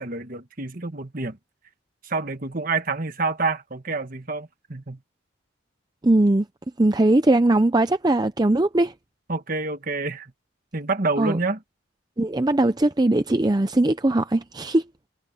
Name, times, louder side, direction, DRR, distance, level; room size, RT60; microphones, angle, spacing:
voice 1, 0.0-1.4 2.0-5.0 9.3-10.3 10.7-11.6, right 3 dB, 40° right, 1.5 m, -28 dB
voice 2, 6.0-6.5 6.8-8.9 11.2-11.4 12.2-14.8, right 2 dB, 20° right, 0.5 m, -20 dB
head